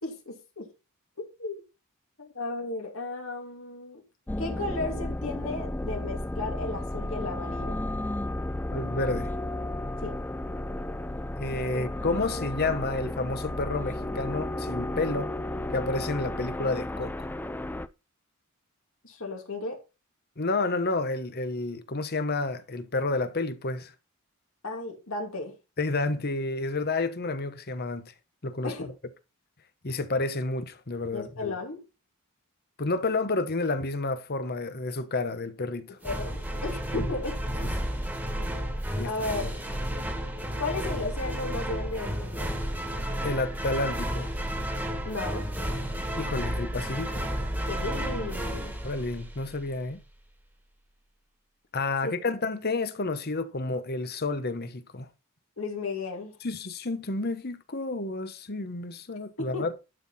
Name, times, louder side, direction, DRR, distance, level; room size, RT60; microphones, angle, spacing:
voice 1, 0.0-0.7 1.4-1.6 2.2-4.0 4.4-7.8 10.0-10.2 11.7-11.9 12.2-12.5 19.0-19.8 24.6-25.6 28.6-28.9 31.1-31.8 36.0-37.4 39.0-39.5 40.6-42.6 45.0-45.5 47.7-48.7 52.0-52.1 55.6-56.4 59.4-59.7, left 3 dB, 65° left, 2.6 m, -34 dB
sound 1, 4.3-17.9, left 1 dB, 10° left, 0.4 m, -33 dB
voice 2, 8.7-9.3 11.4-15.3 15.7-17.3 20.4-23.9 25.8-28.1 28.4-28.7 29.8-31.5 32.8-36.0 36.9-37.1 39.0-39.1 43.2-44.3 46.2-47.1 48.8-50.0 51.7-55.1 56.4-59.7, left 3 dB, 45° left, 1.1 m, -30 dB
sound 2, 36.0-49.7, equal, 10° right, 1.7 m, -32 dB
11.5 x 5.8 x 4.2 m
head